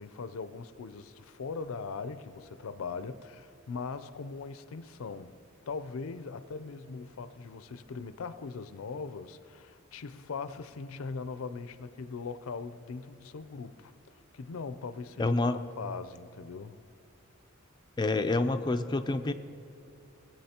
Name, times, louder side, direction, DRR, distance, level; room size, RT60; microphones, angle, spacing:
voice 1, 0.0-5.4 5.7-16.8, left 4 dB, 85° left, 13 dB, 0.5 m, -40 dB
voice 2, 15.2-15.6 18.0-19.3, left 2 dB, 20° left, 8 dB, 0.4 m, -27 dB
19.0 x 8.4 x 2.9 m, 2.6 s
head